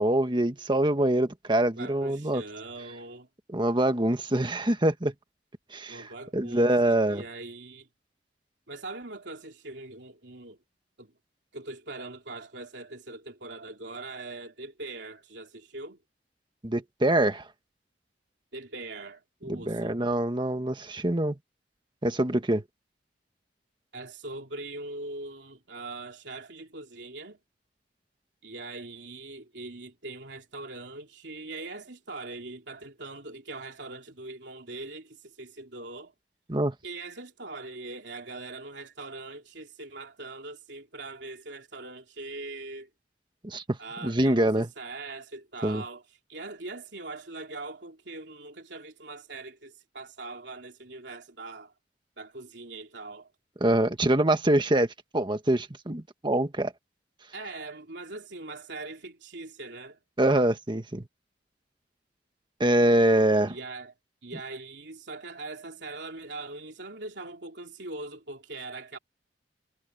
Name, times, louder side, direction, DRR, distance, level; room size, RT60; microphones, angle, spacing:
voice 1, 0.0-2.4 3.5-5.1 5.7-7.2 16.6-17.5 19.5-21.4 22.0-22.6 36.5-36.7 43.4-43.8 44.0-44.7 45.6-45.8 53.6-56.7 60.2-61.0 62.6-63.5, right 1 dB, 25° right, 1.5 m, -24 dB
voice 2, 1.8-3.3 5.9-7.9 8.7-10.6 11.0-11.1 11.5-16.0 18.5-20.0 23.9-27.4 28.4-36.1 36.8-42.9 43.8-46.0 46.3-51.7 52.2-53.3 57.3-60.0 63.5-63.9 64.2-69.0, right 2 dB, 75° right, 3.0 m, -41 dB
head